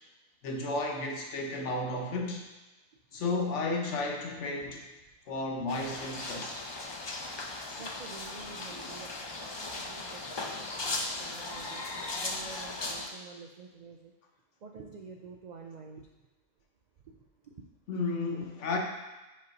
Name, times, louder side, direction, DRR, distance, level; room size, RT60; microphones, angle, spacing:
voice 1, 0.4-2.5 3.1-4.8 5.3-6.7 17.9-18.8, left 2 dB, 70° left, 1 dB, 1.2 m, -33 dB
sound 1, 5.7-13.1, left 2 dB, 40° left, 0.3 m, -37 dB
voice 2, 7.8-14.1 14.6-16.1 17.0-17.6 18.4-18.5, right 5 dB, 75° right, 2 dB, 0.4 m, -49 dB
5.2 x 4.0 x 5.3 m, 1.1 s
omnidirectional pair, 1.3 m